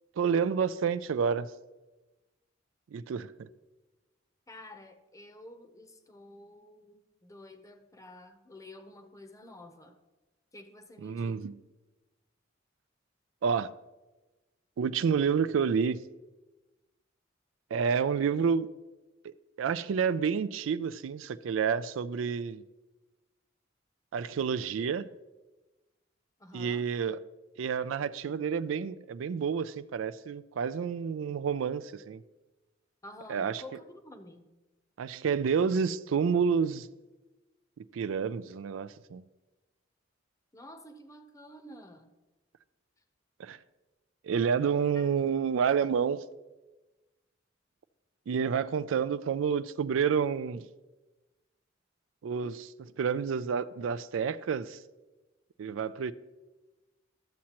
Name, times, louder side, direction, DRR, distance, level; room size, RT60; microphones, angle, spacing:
voice 1, 0.2-1.5 2.9-3.5 11.0-11.5 13.4-13.7 14.8-16.1 17.7-18.7 19.2-22.6 24.1-25.1 26.5-27.2 27.6-32.2 33.3-33.6 35.0-36.9 37.9-39.2 43.4-43.6 44.2-46.2 48.3-50.7 52.2-54.8 55.6-56.1, right 6 dB, 85° right, 0.4 m, -29 dB
voice 2, 4.5-10.0 10.5-11.4 26.4-26.9 33.0-34.5 40.5-42.1 44.9-45.1, left 1 dB, 15° left, 0.7 m, -50 dB
12.5 x 7.4 x 2.9 m
head